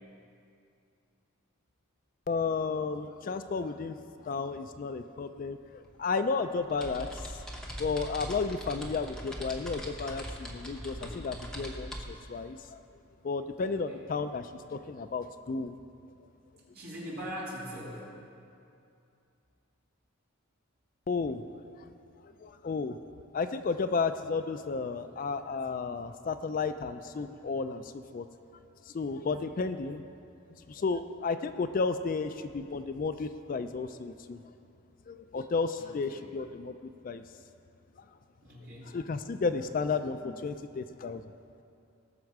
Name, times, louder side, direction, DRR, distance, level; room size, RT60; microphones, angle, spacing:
voice 1, 2.3-4.0 4.2-7.4 7.8-12.8 13.2-15.8 21.1-21.4 21.8-21.9 22.2-23.0 23.3-28.3 28.9-30.0 30.7-34.4 35.1-36.7 37.0-37.2 38.9-41.2, left 4 dB, 40° left, 10 dB, 0.3 m, -33 dB
sound 1, 5.4-5.5 5.8-12.0, equal, 5° left, 0.8 m, -41 dB
voice 2, 16.7-18.1 35.8-36.2 38.4-39.0, equal, 45° right, -6 dB, 2.9 m, -41 dB
18.5 x 6.3 x 4.7 m, 2.5 s
head